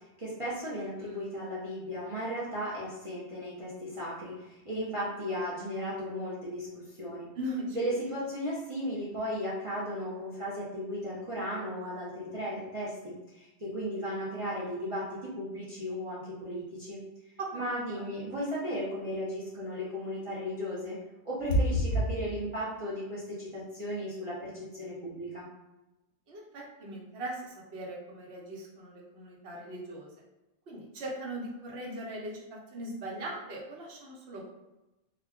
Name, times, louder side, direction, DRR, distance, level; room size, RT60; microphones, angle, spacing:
voice 1, 0.2-7.3 7.7-17.0 17.5-21.0 21.2-25.5, equal, 40° right, -8 dB, 0.5 m, -35 dB
voice 2, 7.4-7.8 17.4-17.5 17.9-18.0 21.5-21.6 26.3-30.1 30.7-32.4 32.7-34.5, right 1 dB, 65° right, -2 dB, 0.9 m, -37 dB
2.2 x 2.2 x 3.5 m, 1.0 s
omnidirectional pair, 1.2 m